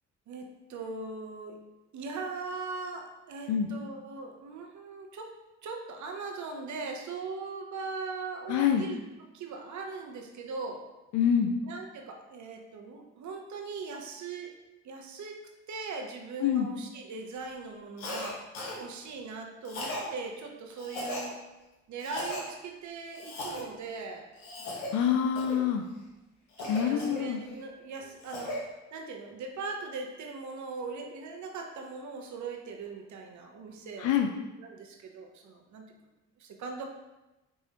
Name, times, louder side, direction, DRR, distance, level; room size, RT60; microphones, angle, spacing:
voice 1, 0.3-1.6 1.9-5.4 5.6-9.0 9.3-10.8 11.6-14.5 14.8-15.4 15.7-18.4 18.8-21.4 21.9-24.3 26.6-28.6 28.9-34.1 34.6-35.9 36.4-36.9, right 4 dB, 55° right, 2 dB, 0.7 m, -40 dB
voice 2, 8.5-8.8 11.1-11.5 16.4-16.7 24.9-25.8 26.7-27.4 34.0-34.3, left 8 dB, 55° left, 4 dB, 0.5 m, -26 dB
Cough, 18.0-18.3 18.5-18.8 19.6-20.1 20.8-21.3 22.0-22.4 23.1-23.6 24.4-24.9 25.4-25.6 26.6-27.6 28.0-28.6, left 1 dB, 85° left, 0.8 m, -37 dB
4.8 x 2.7 x 2.8 m, 1.0 s
hypercardioid pair, 40°, 35 cm